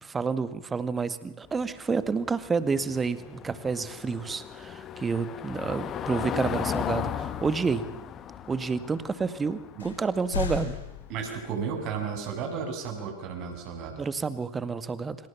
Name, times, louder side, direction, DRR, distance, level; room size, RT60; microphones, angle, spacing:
voice 1, 0.0-7.8 8.5-10.7 14.0-15.2, right 5 dB, 15° right, 13 dB, 2.0 m, -29 dB
Car passing by / Engine, 1.4-12.1, left 9 dB, 30° left, 1.9 m, -37 dB
sound 1, 5.9-6.1 7.2-7.6 8.2-8.3 9.2-9.3 9.8-11.7, left 7 dB, 65° left, 5.8 m, -36 dB
voice 2, 11.1-14.0, right 6 dB, 40° right, 4 dB, 7.9 m, -33 dB
29.5 x 27.0 x 7.3 m, 0.79 s
figure-of-eight pair, 90°, 0 cm